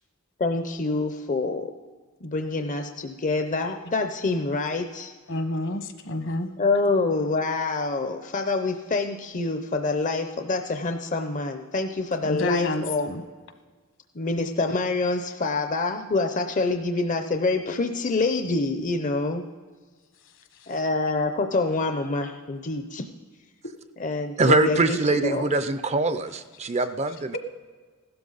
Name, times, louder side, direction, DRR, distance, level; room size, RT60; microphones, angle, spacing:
voice 1, 0.4-1.7 2.2-5.1 6.6-13.1 14.2-19.4 20.7-23.0 24.0-25.5, left 3 dB, 40° left, 0.6 m, -26 dB
voice 2, 5.3-6.5 12.2-13.2, left 2 dB, 65° left, 1.2 m, -28 dB
voice 3, 24.4-27.4, right 3 dB, 30° right, 0.5 m, -23 dB
16.0 x 12.5 x 4.0 m
head